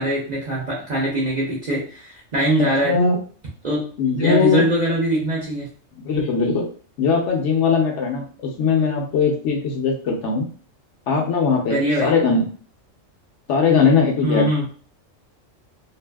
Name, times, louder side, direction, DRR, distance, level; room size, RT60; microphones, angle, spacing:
voice 1, 0.0-3.0 3.6-3.9 4.2-5.7 11.7-12.1 14.2-14.6, right 1 dB, 45° right, -5 dB, 0.6 m, -22 dB
voice 2, 2.8-3.2 4.0-4.6 6.0-6.7 7.0-10.5 11.1-12.4 13.5-14.5, left 5 dB, 70° left, 1 dB, 0.9 m, -19 dB
2.6 x 2.4 x 2.2 m, 0.42 s
omnidirectional pair, 1.3 m